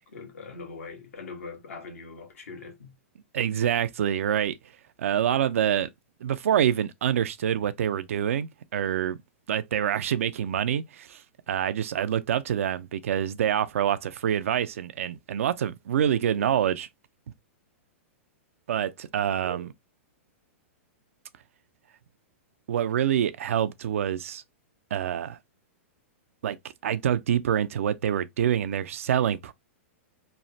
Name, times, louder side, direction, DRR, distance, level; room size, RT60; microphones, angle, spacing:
voice 1, 0.1-2.9, left 4 dB, 80° left, 1.2 m, -42 dB
voice 2, 3.3-4.6 5.0-5.9 6.2-9.2 9.5-11.2 11.5-16.9 18.7-19.7 22.7-24.4 24.9-25.4 26.4-26.6 26.8-29.5, right 9 dB, 75° right, 0.4 m, -26 dB
3.1 x 2.0 x 2.6 m
hypercardioid pair, 125°, 7 cm